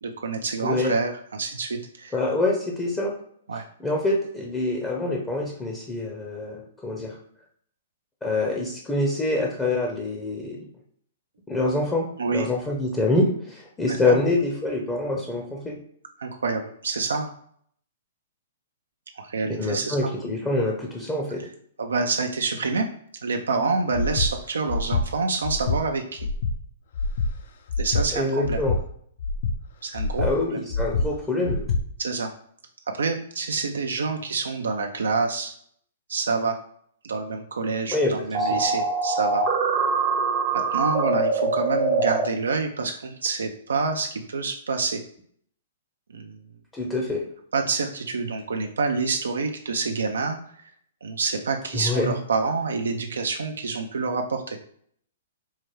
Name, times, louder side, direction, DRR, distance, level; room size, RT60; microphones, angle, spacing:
voice 1, 0.0-2.2 3.5-3.6 12.2-12.5 13.9-14.2 16.2-17.3 19.2-20.1 21.4-21.5 21.8-22.9 23.2-26.3 27.8-28.6 29.8-30.3 32.0-32.3 32.9-35.5 36.1-36.6 37.0-39.4 40.5-45.0 46.1-46.4 47.5-50.7 51.0-54.6, right 4 dB, 85° right, 4 dB, 0.4 m, -27 dB
voice 2, 0.6-0.9 2.1-3.1 3.8-7.2 8.2-10.6 11.5-15.8 19.5-21.4 28.1-28.8 30.2-31.7 37.9-38.6 46.7-47.2 51.7-52.1, left 2 dB, 15° left, -1 dB, 0.6 m, -25 dB
Breathing, 23.9-24.3 24.7-25.0 25.4-25.8 26.2-26.5 26.9-27.3 27.7-28.0 28.4-28.8 29.2-29.6 29.9-30.3 30.7-31.1 31.4-31.8, left 3 dB, 65° left, 0.4 m, -25 dB
sound 1, 38.3-42.3, right 3 dB, 35° right, 0.6 m, -23 dB
4.4 x 2.2 x 3.1 m, 0.64 s
hypercardioid pair, 135°, 0 cm